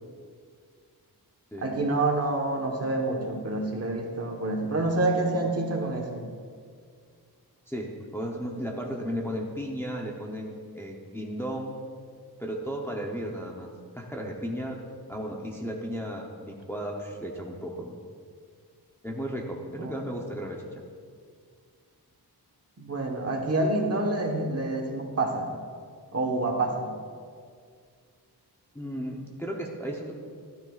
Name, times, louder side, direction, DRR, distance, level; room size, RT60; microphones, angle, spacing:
voice 1, 1.6-6.3 19.8-19.9 22.8-25.5 26.1-26.9, right 2 dB, 40° right, 1 dB, 1.3 m, -27 dB
voice 2, 7.7-11.8 12.4-14.8 15.1-18.0 19.0-20.8 28.7-30.1, equal, 5° left, -1 dB, 0.8 m, -35 dB
12.5 x 12.5 x 2.4 m, 2.1 s
wide cardioid pair, 155°, 39 cm